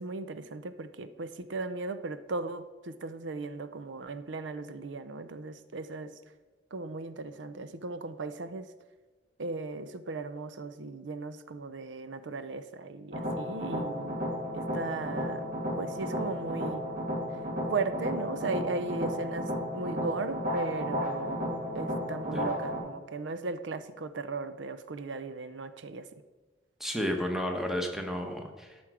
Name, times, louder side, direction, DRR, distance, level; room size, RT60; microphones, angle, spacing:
voice 1, 0.0-6.2 6.7-8.7 9.4-14.2 14.5-15.4 15.8-16.8 17.7-26.1, right 3 dB, 90° right, 12 dB, 0.6 m, -37 dB
sound 1, 13.1-22.8, equal, 45° right, 2.5 m, -33 dB
voice 2, 26.8-28.8, equal, ahead, 3 dB, 1.1 m, -32 dB
12.5 x 6.2 x 4.8 m, 1.3 s
head